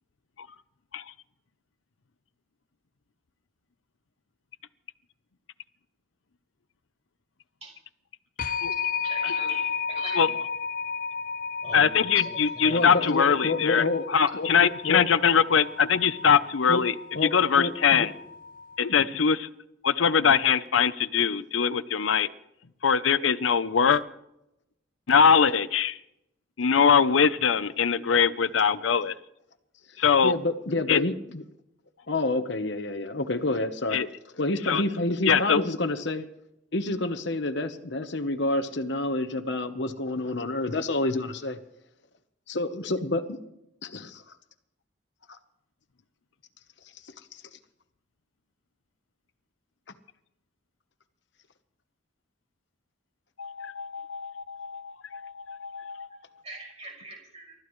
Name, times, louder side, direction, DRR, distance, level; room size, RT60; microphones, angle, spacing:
sound 1, 8.4-19.0, left 6 dB, 45° left, 0.7 m, -34 dB
voice 1, 9.0-10.2 11.6-13.5 56.1-57.5, right 1 dB, 30° right, -1 dB, 6.1 m, -42 dB
voice 2, 11.7-16.9 17.2-18.1 18.8-19.5 19.8-22.3 22.8-24.0 25.1-26.0 26.6-29.1 30.0-30.3 30.9-31.0 33.9-34.1 34.6-34.8 35.3-35.7 53.4-56.1, left 6 dB, 85° left, 14 dB, 0.7 m, -22 dB
voice 3, 12.7-14.0 14.3-14.5 14.8-15.0 16.7-16.8 17.1-17.3 17.6-18.1 18.9-19.1 30.2-31.4 32.1-34.0 34.4-36.2 36.7-41.6 42.5-43.4 43.8-44.2 45.3-45.4 47.0-47.6, left 2 dB, 65° left, 9 dB, 1.1 m, -28 dB
29.5 x 14.0 x 3.2 m, 0.84 s
head